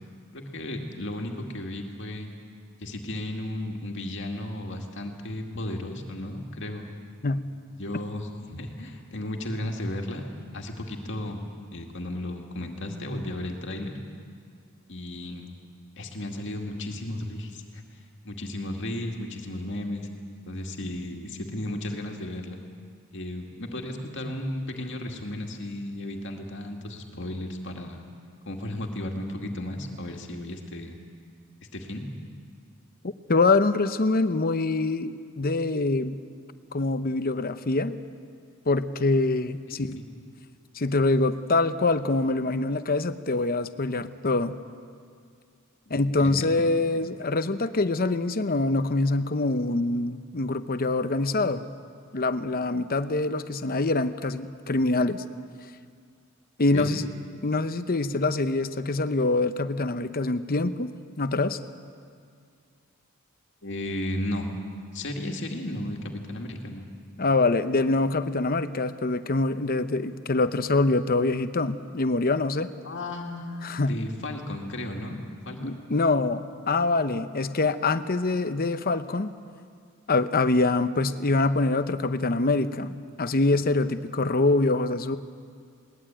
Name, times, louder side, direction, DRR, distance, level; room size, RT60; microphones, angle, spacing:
voice 1, 0.3-2.3 2.8-6.9 7.8-10.3 10.5-11.4 11.7-13.9 14.9-15.5 16.0-17.8 18.2-20.1 20.4-22.6 23.1-28.0 28.5-31.0 31.7-32.0 39.7-40.0 45.9-46.7 56.7-56.9 63.6-64.5 64.9-66.9 72.8-75.8, left 1 dB, 60° left, 2 dB, 2.2 m, -34 dB
voice 2, 33.0-36.2 36.7-38.0 38.7-40.0 40.7-44.6 45.9-51.6 52.1-55.2 56.6-57.1 57.4-61.6 67.2-72.7 73.6-74.0 75.6-79.3 80.1-85.2, left 3 dB, 45° left, 11 dB, 0.8 m, -25 dB
21.5 x 19.0 x 8.9 m, 2.2 s
head